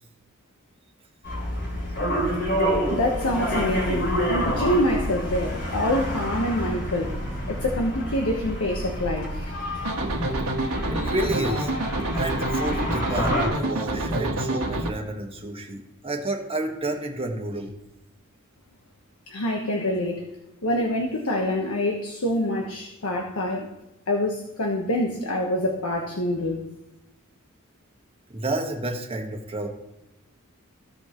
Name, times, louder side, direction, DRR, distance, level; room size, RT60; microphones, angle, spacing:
sound 1, 1.2-13.5, equal, 55° left, 3.1 m, -28 dB
voice 1, 2.9-7.1 7.5-9.5 19.3-20.2 20.6-23.7 24.1-26.6, left 1 dB, 80° left, 1 dB, 1.1 m, -26 dB
sound 2, 9.8-14.9, right 1 dB, 90° right, 1.5 m, -27 dB
voice 2, 10.9-11.7 12.1-17.7 28.3-29.7, right 2 dB, 25° right, 1 dB, 1.4 m, -30 dB
15.5 x 5.3 x 3.0 m, 0.93 s
head